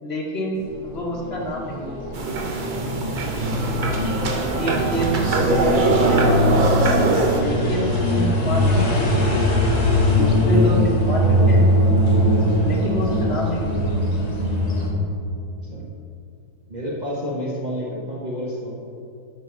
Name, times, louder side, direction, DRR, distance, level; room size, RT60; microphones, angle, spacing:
voice 1, 0.0-2.2 4.6-5.2 5.6-6.7 7.3-9.0 9.3-9.4 10.1-11.7 12.6-14.0, equal, 45° left, -2 dB, 1.3 m, -28 dB
sound 1, 0.6-14.9, left 1 dB, 25° left, 1.3 m, -21 dB
sound 2, 2.1-7.4, right 3 dB, 45° right, 0.6 m, -22 dB
voice 2, 15.6-15.9 16.7-18.7, equal, 30° right, -4 dB, 1.1 m, -30 dB
9.9 x 4.5 x 5.9 m, 2.5 s
omnidirectional pair, 1.7 m